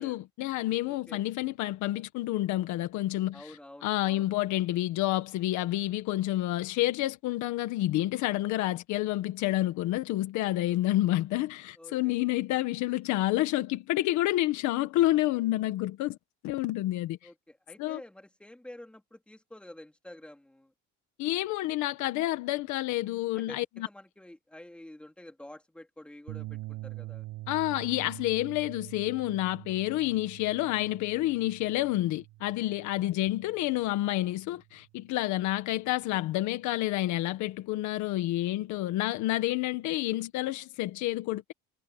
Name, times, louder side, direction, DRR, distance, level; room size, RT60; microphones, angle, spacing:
voice 1, 0.0-3.4 3.8-16.2 16.4-17.2 17.8-18.0 21.2-23.9 27.5-41.5, left 16 dB, 70° left, 1.7 m, -29 dB
voice 2, 0.8-1.2 3.3-4.3 10.7-10.8 11.8-12.1 17.2-20.7 23.3-27.3, left 1 dB, 5° left, 3.7 m, -49 dB
sound 1, 26.3-34.8, right 19 dB, 75° right, 6.2 m, -45 dB
cardioid pair, 165°, 30 cm